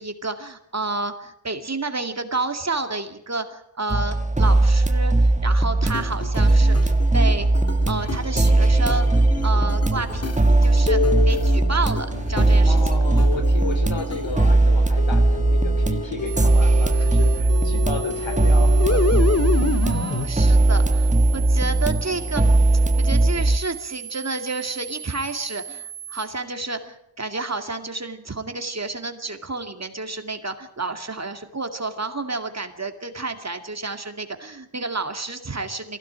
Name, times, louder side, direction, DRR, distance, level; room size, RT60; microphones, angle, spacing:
voice 1, 0.0-7.5 7.9-10.2 10.6-12.8 19.8-22.4 23.0-36.0, right 3 dB, 30° right, 6 dB, 2.3 m, -30 dB
sound 1, 3.9-23.6, right 2 dB, 15° right, 1.4 m, -19 dB
Game Setup, 5.9-14.6 15.0-20.3, left 3 dB, 30° left, 2.0 m, -29 dB
voice 2, 12.7-19.2, left 3 dB, 65° left, 8 dB, 3.7 m, -33 dB
sound 2, 16.3-26.3, right 9 dB, 50° right, 3.3 m, -37 dB
23.0 x 16.5 x 8.8 m, 0.80 s
wide cardioid pair, 110°, 49 cm